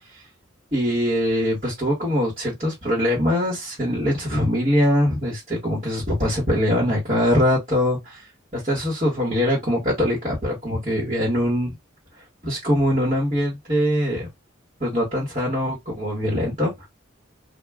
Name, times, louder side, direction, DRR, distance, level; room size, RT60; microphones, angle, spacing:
voice 1, 0.7-8.2 8.5-11.7 12.4-14.3 14.8-16.9, equal, 30° right, 1.1 m, -22 dB
2.3 x 2.1 x 3.4 m
head